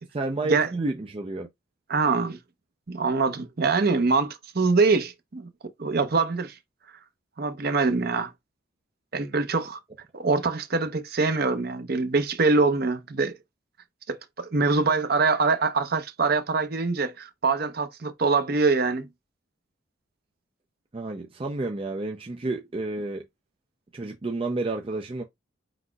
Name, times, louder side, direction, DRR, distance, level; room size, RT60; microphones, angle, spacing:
voice 1, 0.1-1.5 20.9-23.3 23.9-25.2, right 2 dB, 30° right, 0.5 m, -30 dB
voice 2, 1.9-2.4 2.9-5.5 5.8-6.5 7.4-8.3 9.1-9.8 10.1-13.3 14.1-19.1, right 4 dB, 50° right, 0.8 m, -24 dB
5.0 x 4.0 x 2.3 m
head